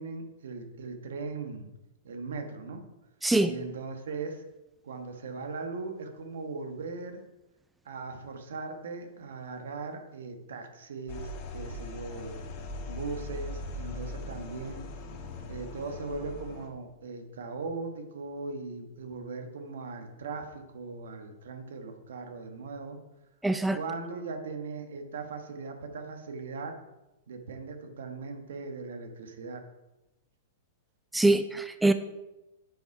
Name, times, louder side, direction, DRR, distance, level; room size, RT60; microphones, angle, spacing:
voice 1, 0.0-1.6 2.0-2.8 3.4-4.4 4.8-7.2 7.8-12.4 12.9-14.9 15.5-23.0 23.7-26.7 27.3-29.6, right 4 dB, 75° right, 5 dB, 1.4 m, -39 dB
sound 1, 11.1-16.7, left 2 dB, 45° left, 1.6 m, -40 dB
voice 2, 23.4-23.8 31.1-31.9, right 2 dB, 5° right, 10 dB, 0.4 m, -23 dB
8.9 x 5.5 x 4.7 m, 0.99 s
hypercardioid pair, 120°, 0 cm